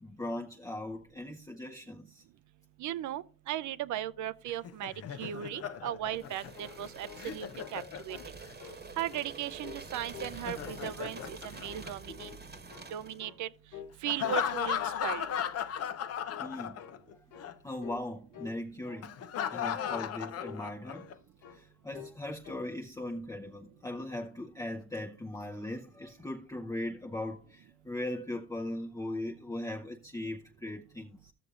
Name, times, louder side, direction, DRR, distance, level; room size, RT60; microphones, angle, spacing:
voice 1, 0.0-2.2 16.4-16.8 17.6-19.1 19.5-21.1 21.5-31.3, left 1 dB, 10° left, 0.6 m, -39 dB
voice 2, 2.8-4.9 5.2-8.2 9.0-12.3 12.9-13.5 14.0-15.3, right 11 dB, 75° right, 0.5 m, -37 dB
Laughter, 4.5-8.5 10.2-12.4 14.1-17.1 17.4-17.5 19.0-21.1, left 9 dB, 55° left, 0.5 m, -36 dB
sound 1, 6.1-13.3, right 4 dB, 35° right, 1.1 m, -47 dB
sound 2, 6.3-7.8 8.1-8.3 8.6-9.3 9.6-10.4 10.6-11.4 11.7-11.9 12.2-12.9 13.2-13.4 13.7-14.0 14.2-15.0 15.2-15.5 15.8-16.0 16.3-16.5 16.8-17.0 17.3-17.5 17.8-18.1 18.3-18.6 18.8-19.1 19.4-19.6 19.9-20.1 20.4-21.2 21.4-21.6 21.9-22.2 22.4-22.7, left 8 dB, 80° left, 1.1 m, -49 dB
14.0 x 6.7 x 2.4 m
cardioid pair, 90°, 30 cm